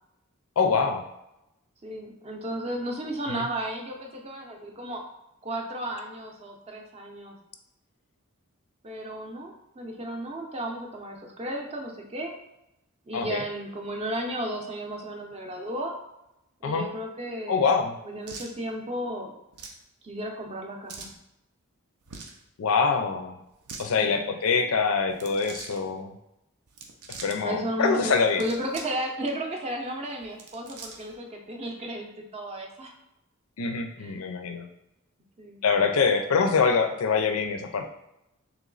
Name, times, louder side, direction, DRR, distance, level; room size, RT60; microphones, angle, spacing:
voice 1, 0.6-1.0 3.3-3.4 13.1-13.4 16.6-16.9 17.5-18.0 22.6-23.3 23.8-26.1 27.2-28.4 33.6-34.7 35.6-37.9, left 5 dB, 70° left, 6 dB, 0.4 m, -24 dB
voice 2, 1.8-5.0 5.4-7.4 8.8-12.3 13.1-15.9 16.6-17.8 18.0-19.3 20.0-21.1 24.0-24.4 27.4-32.9 34.0-34.2 35.4-35.6, right 1 dB, 30° right, 2 dB, 0.6 m, -34 dB
sound 1, 18.2-18.5 19.5-19.8 20.9-21.2 22.0-22.4 23.5-23.9 25.1-25.8 26.7-27.4 28.2-29.0 29.3-29.4 30.2-31.1, right 4 dB, 90° right, 0.6 m, -42 dB
3.0 x 3.0 x 3.8 m, 0.86 s
head